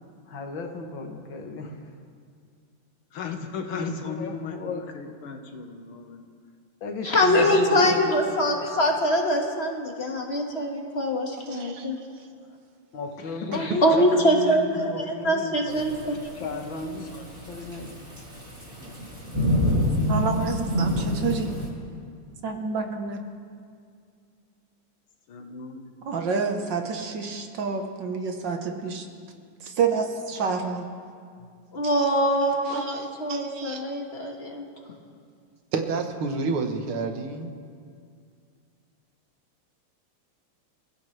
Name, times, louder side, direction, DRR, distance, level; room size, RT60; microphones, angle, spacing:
voice 1, 0.3-1.9 3.7-5.4 6.8-8.7 12.9-14.1 14.7-17.2 17.5-17.9, left 3 dB, 65° left, 4 dB, 2.1 m, -35 dB
voice 2, 3.1-6.2 7.4-8.0 14.1-14.9 25.3-26.0, left 6 dB, 85° left, 4 dB, 2.2 m, -37 dB
voice 3, 7.0-12.0 13.8-16.2 31.7-34.6, equal, 30° left, 1 dB, 1.8 m, -23 dB
voice 4, 11.5-12.3 31.8-32.1 32.7-33.8 34.1-34.2 35.7-37.5, right 4 dB, 85° right, 5 dB, 2.1 m, -31 dB
Thunderstorm / Rain, 15.7-21.7, left 1 dB, 40° right, 4.4 m, -27 dB
voice 5, 20.1-21.5 22.4-23.2 26.0-29.1 29.6-30.8, right 5 dB, 60° right, 4 dB, 1.8 m, -28 dB
28.5 x 15.0 x 3.3 m, 2.2 s
omnidirectional pair, 2.3 m